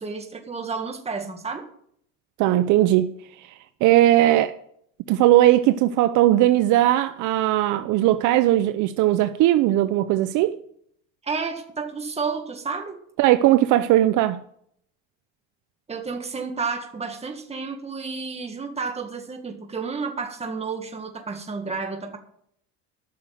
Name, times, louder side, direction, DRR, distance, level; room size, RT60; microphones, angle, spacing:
voice 1, 0.0-1.6 11.2-13.0 15.9-22.2, right 4 dB, 20° right, 1.8 m, -31 dB
voice 2, 2.4-3.1 3.4-3.5 3.8-4.6 5.1-10.6 13.2-14.4, right 14 dB, 65° right, 0.7 m, -18 dB
13.0 x 6.4 x 7.7 m
cardioid pair, 130°, 33 cm